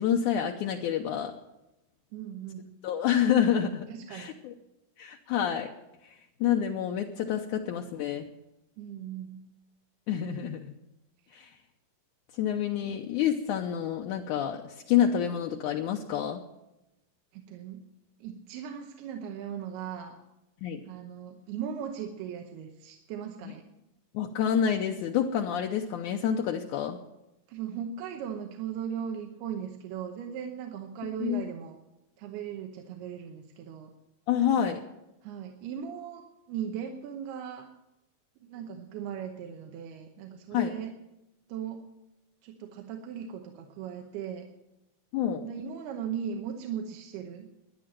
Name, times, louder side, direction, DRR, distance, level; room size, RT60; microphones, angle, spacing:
voice 1, 0.0-1.3 2.8-4.5 5.0-5.7 6.0-6.1 6.4-8.3 10.1-10.7 11.3-11.5 12.4-16.4 20.6-20.8 24.1-27.0 31.2-31.4 34.3-34.8 40.5-40.8 45.1-45.5, left 9 dB, 75° left, 2 dB, 1.8 m, -28 dB
voice 2, 2.1-2.7 3.9-4.4 8.8-9.4 17.3-17.8 18.2-20.2 20.9-23.6 27.5-31.8 32.2-33.9 34.5-34.8 35.2-37.7 38.4-40.9 41.5-41.8 42.4-44.5 45.4-47.5, right 8 dB, 90° right, 3 dB, 3.0 m, -38 dB
13.5 x 10.5 x 7.6 m, 0.93 s
omnidirectional pair, 4.4 m